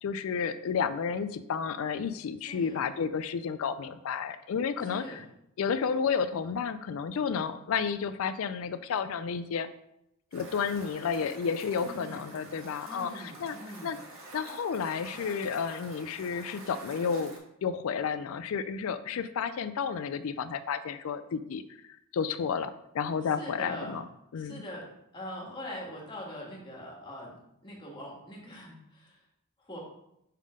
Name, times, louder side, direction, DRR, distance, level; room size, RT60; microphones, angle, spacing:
voice 1, 0.0-5.2 5.6-9.7 10.3-13.6 13.8-14.0 14.3-17.3 17.6-21.6 22.1-24.0 24.3-24.6, left 6 dB, 65° left, 12 dB, 0.4 m, -31 dB
voice 2, 2.5-2.8 4.9-5.2 11.7-12.4 12.9-14.0 23.3-24.0 24.4-27.4 27.6-29.2 29.6-29.8, equal, 20° left, -3 dB, 1.6 m, -43 dB
sound 1, 10.3-17.4, right 2 dB, 65° right, 1.5 m, -48 dB
5.6 x 3.6 x 4.9 m, 0.79 s
head